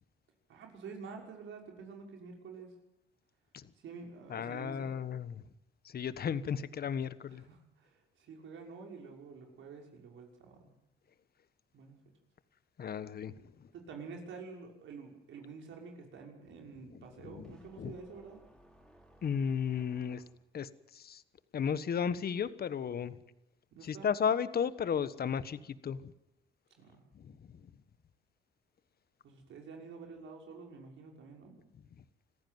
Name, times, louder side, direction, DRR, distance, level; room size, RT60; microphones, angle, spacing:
voice 1, 0.5-2.8 3.8-4.9 7.3-10.7 11.7-12.0 13.7-18.4 23.7-24.1 26.8-27.1 29.2-31.6, right 5 dB, 75° right, 1 dB, 6.1 m, -48 dB
voice 2, 4.3-5.4 5.8-7.4 12.8-13.7 16.9-18.0 19.2-20.2 20.5-21.2 21.5-23.2 23.8-26.1 27.1-27.7 31.9-32.0, left 7 dB, 50° left, 14 dB, 1.3 m, -35 dB
sound 1, 17.4-20.6, right 1 dB, ahead, 5.4 m, -62 dB
26.0 x 15.0 x 9.5 m, 0.86 s
cardioid pair, 90°, 20 cm